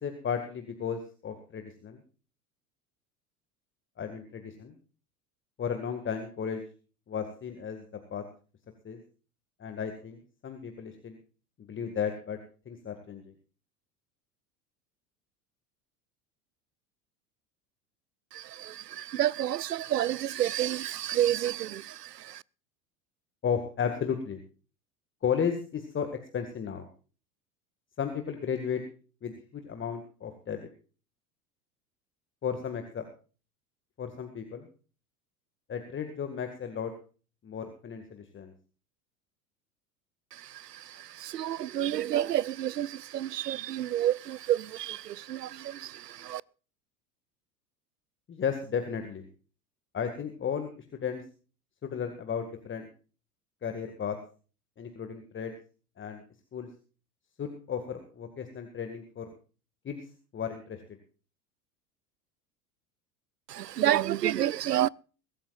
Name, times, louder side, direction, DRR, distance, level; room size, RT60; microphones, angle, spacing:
voice 1, 0.0-2.0 4.0-4.7 5.6-6.6 7.1-7.8 8.1-8.2 8.8-9.0 9.6-11.2 11.7-12.4 12.7-13.3 23.4-24.4 25.2-26.1 26.3-26.9 28.0-28.8 29.2-30.6 32.4-33.1 34.0-34.7 35.7-36.9 37.4-38.5 48.3-49.3 49.9-51.2 51.8-52.9 53.6-54.2 54.8-55.5 56.0-56.2 56.5-56.7 57.4-59.3 59.8-60.1 60.3-60.8, left 7 dB, 25° left, 2.0 m, -34 dB
voice 2, 18.3-22.4 40.5-46.4 63.5-64.9, right 12 dB, 85° right, 0.5 m, -30 dB
23.0 x 13.0 x 2.5 m
figure-of-eight pair, 75°, 47 cm